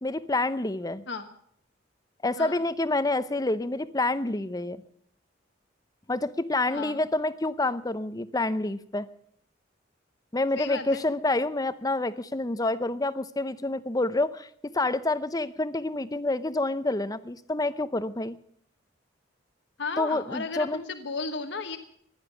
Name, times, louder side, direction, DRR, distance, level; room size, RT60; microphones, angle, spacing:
voice 1, 0.0-1.0 2.2-4.8 6.1-9.1 10.3-18.4 20.0-20.8, left 2 dB, 20° left, 14 dB, 0.7 m, -28 dB
voice 2, 6.7-7.0 10.6-11.0 19.8-21.8, left 4 dB, 60° left, 7 dB, 1.2 m, -34 dB
15.5 x 11.5 x 7.1 m, 0.67 s
head